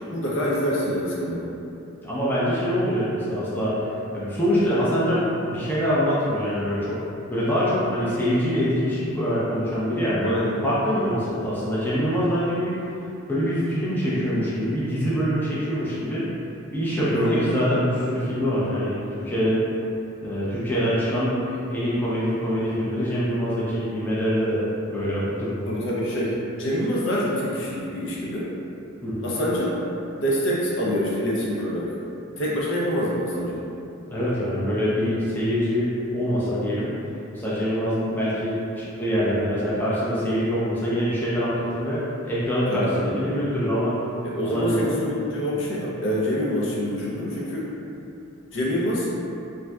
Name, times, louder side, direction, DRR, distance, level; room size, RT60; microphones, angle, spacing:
voice 1, 0.1-1.5 10.2-10.6 17.1-17.4 25.7-28.5 29.2-29.7 30.2-32.0 32.4-33.6 42.7-43.1 44.2-47.7 48.5-49.1, equal, 60° left, -6 dB, 0.6 m, -26 dB
voice 2, 2.0-7.0 7.3-10.3 10.6-12.7 13.3-16.3 16.7-19.6 20.2-21.4 21.7-25.6 29.0-29.2 34.1-36.9 37.3-43.9 44.4-44.9, equal, 10° left, -10 dB, 0.4 m, -24 dB
3.4 x 2.6 x 2.2 m, 2.7 s
head